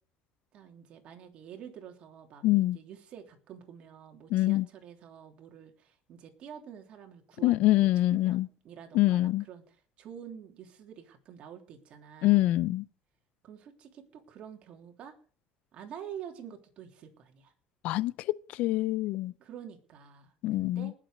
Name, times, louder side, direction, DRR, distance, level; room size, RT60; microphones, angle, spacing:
voice 1, 0.5-12.4 13.4-15.1 15.7-17.5 19.4-20.9, right 8 dB, 50° right, 3.3 m, -48 dB
voice 2, 2.4-2.8 4.3-4.7 7.4-8.5 8.9-9.4 12.2-12.8 17.8-19.3 20.4-20.9, left 16 dB, 65° left, 0.5 m, -25 dB
19.5 x 7.6 x 5.2 m
cardioid pair, 135°, 3 cm